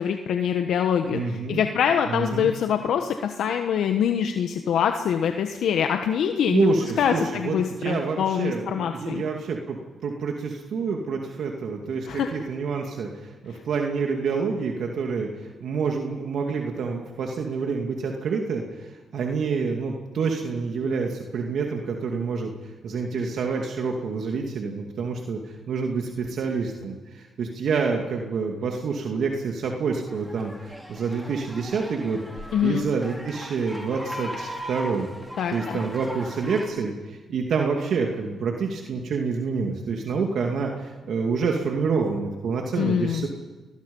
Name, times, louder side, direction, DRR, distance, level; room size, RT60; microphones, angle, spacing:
voice 1, 0.0-6.7 7.0-9.2 12.1-12.3 32.5-32.9 35.4-35.8 42.8-43.3, left 8 dB, 80° left, 5 dB, 1.2 m, -24 dB
voice 2, 1.1-1.6 2.1-2.5 6.5-9.8 10.0-22.5 22.8-35.1 35.5-43.3, right 5 dB, 70° right, 2 dB, 2.4 m, -27 dB
sound 1, 30.1-36.7, equal, ahead, 5.1 m, -38 dB
29.5 x 20.5 x 5.5 m, 1.2 s
cardioid pair, 65°, 0 cm